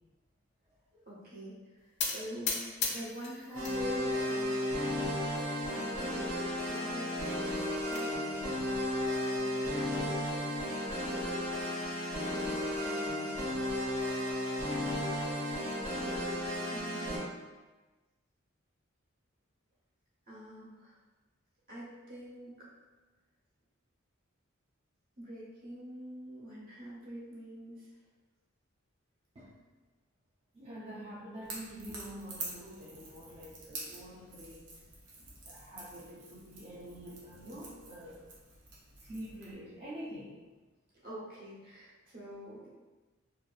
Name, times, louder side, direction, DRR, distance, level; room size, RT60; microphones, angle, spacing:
voice 1, 1.1-4.9 5.7-6.2 6.7-7.1 7.9-8.6 9.2-10.4 12.3-13.4 16.7-17.2 20.3-20.9 21.7-22.6 25.2-27.9 41.0-42.7, equal, 50° right, -7 dB, 1.0 m, -46 dB
sound 1, 2.0-3.8 4.2-4.8 5.4-5.5 5.7-5.8 6.2-6.3 7.4-8.1, left 5 dB, 55° left, 0.4 m, -36 dB
sound 2, 3.5-17.2, left 1 dB, 85° right, 1.5 m, -34 dB
voice 2, 30.5-34.7 35.2-38.2 39.0-40.4, equal, 30° right, -7 dB, 0.3 m, -46 dB
Crackle / Crack, 31.4-39.5, right 3 dB, 65° right, 0.7 m, -48 dB
2.8 x 2.3 x 2.4 m, 1.2 s
head